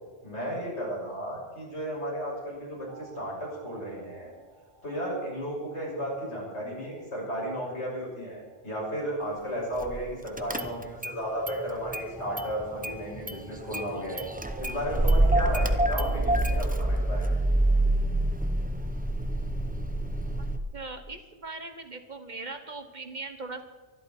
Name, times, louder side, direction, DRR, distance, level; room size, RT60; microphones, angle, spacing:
voice 1, 0.2-4.3 4.8-14.2 14.6-17.4, equal, 90° left, -4 dB, 6.7 m, -34 dB
sound 1, 2.9-9.5 12.2-15.5, right 6 dB, 20° left, 5.0 m, -52 dB
Car / Engine starting, 9.8-10.0 10.4-11.2 11.5-12.5 12.8-20.6, right 1 dB, 10° right, 0.7 m, -26 dB
voice 2, 20.7-23.6, right 3 dB, 45° right, 8 dB, 1.2 m, -40 dB
23.5 x 12.0 x 4.4 m, 1.4 s
omnidirectional pair, 1.1 m